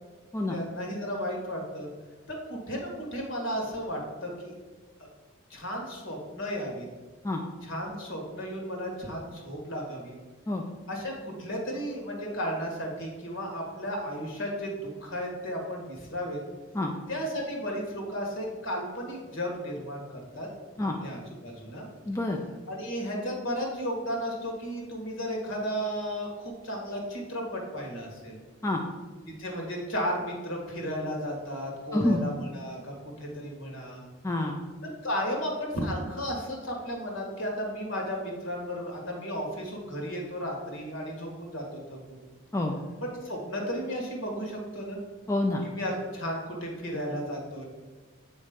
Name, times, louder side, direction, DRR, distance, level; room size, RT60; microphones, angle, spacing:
voice 1, 0.5-1.9 2.3-4.5 5.0-5.1 5.5-6.9 7.6-10.2 10.9-14.7 15.0-16.4 17.1-20.0 20.3-20.5 20.8-21.9 22.7-28.4 29.4-34.0 34.8-41.6 41.9-42.2 43.0-45.0 45.6-47.6, equal, 65° left, 0 dB, 1.7 m, -34 dB
voice 2, 22.1-22.4 28.6-28.8 31.9-32.2 34.2-34.6 42.5-42.7 45.3-45.6, left 1 dB, 15° left, 1 dB, 0.4 m, -27 dB
8.3 x 3.2 x 5.1 m, 1.3 s
head